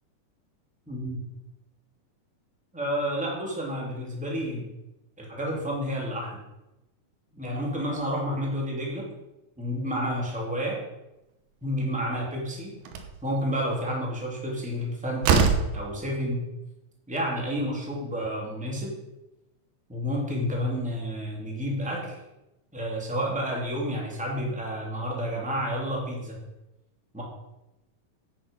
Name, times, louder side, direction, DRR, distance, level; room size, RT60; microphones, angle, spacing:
voice 1, 0.9-1.2 2.7-4.6 5.2-6.4 7.3-9.1 9.6-10.8 11.6-12.7 13.2-16.4 17.1-19.0 19.9-22.2 22.7-26.4 27.1-27.2, equal, ahead, -2 dB, 2.1 m, -30 dB
Slam, 12.2-12.3 12.9-13.2 14.7-14.8 15.2-15.8, right 6 dB, 80° right, 3.0 m, -22 dB
10.5 x 8.7 x 5.4 m, 0.94 s
omnidirectional pair, 4.3 m